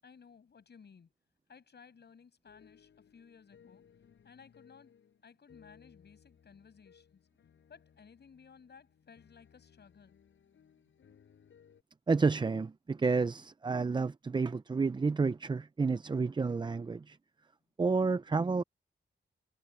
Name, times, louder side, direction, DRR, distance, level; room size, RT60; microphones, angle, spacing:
voice 1, 0.0-1.1 1.5-3.8 4.2-5.0 5.2-7.3 7.7-10.2, left 6 dB, 60° left, 7.1 m, -58 dB
sound 1, 2.5-11.8, left 8 dB, 80° left, 5.4 m, -63 dB
voice 2, 12.1-17.2 17.8-18.6, right 4 dB, 25° right, 0.5 m, -30 dB
wide cardioid pair, 110°, 20 cm